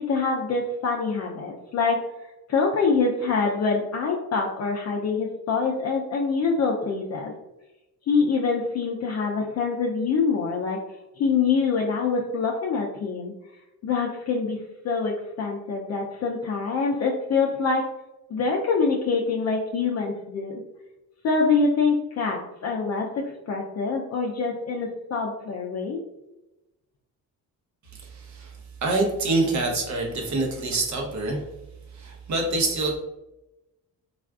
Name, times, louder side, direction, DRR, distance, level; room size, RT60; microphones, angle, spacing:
voice 1, 0.0-7.3 8.1-10.8 11.2-13.3 13.8-17.8 18.3-20.6 21.2-26.0, left 4 dB, 50° left, -1 dB, 0.4 m, -25 dB
voice 2, 27.9-31.4 31.9-33.0, right 2 dB, 55° right, 0 dB, 0.8 m, -26 dB
3.4 x 2.4 x 2.3 m, 0.97 s
cardioid pair, 115°, 35 cm